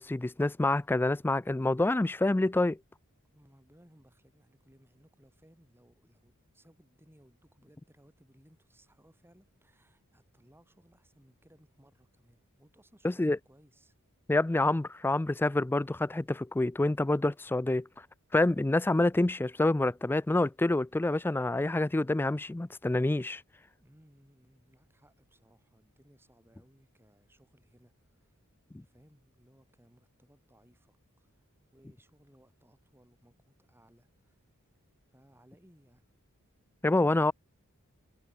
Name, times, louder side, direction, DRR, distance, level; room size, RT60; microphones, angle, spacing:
voice 1, 0.0-2.8 13.0-13.4 14.3-17.9 18.3-23.4 28.7-28.8 36.8-37.3, left 2 dB, 10° left, 0.3 m, -27 dB
voice 2, 3.2-14.0 23.8-28.4 28.7-31.4 31.7-34.4 35.1-36.0, equal, 10° right, 6.7 m, -63 dB
head